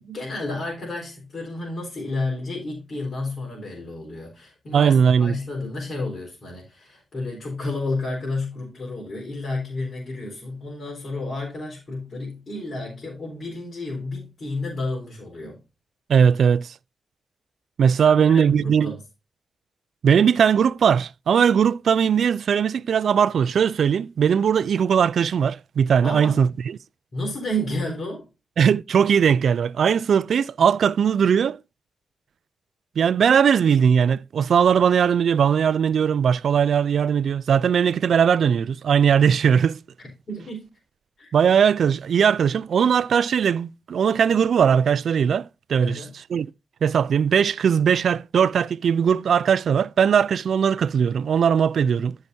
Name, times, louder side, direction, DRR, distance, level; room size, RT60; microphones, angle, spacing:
voice 1, 0.0-4.9 5.2-15.6 18.1-19.0 26.0-26.5 27.1-28.3 40.0-40.6 41.2-41.3 45.8-46.2 51.8-52.0, left 2 dB, 55° left, 4.2 m, -31 dB
voice 2, 4.7-5.4 16.1-16.7 17.8-19.0 20.0-26.8 28.6-31.6 33.0-39.8 41.3-46.0 46.3-46.5 46.8-52.2, right 7 dB, 75° right, 0.4 m, -19 dB
13.5 x 5.8 x 2.7 m
supercardioid pair, 50°, 0 cm